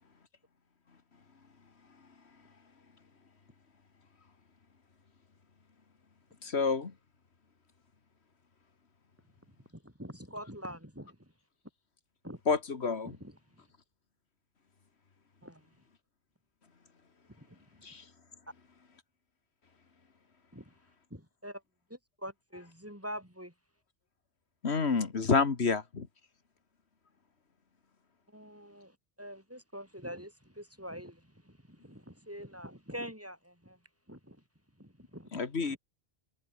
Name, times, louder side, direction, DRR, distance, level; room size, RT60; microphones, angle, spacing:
voice 1, 6.4-6.9 12.5-13.1 17.8-18.0 24.6-26.1 35.3-35.8, left 4 dB, 85° left, 2.1 m, -29 dB
voice 2, 9.5-11.3 12.2-12.4 13.0-13.4 15.4-15.7 17.4-17.6 20.5-20.7 21.1-21.6 21.9-23.5 28.3-33.8 34.1-34.4 34.8-35.8, equal, 15° right, 7.4 m, -45 dB
omnidirectional pair, 1.1 m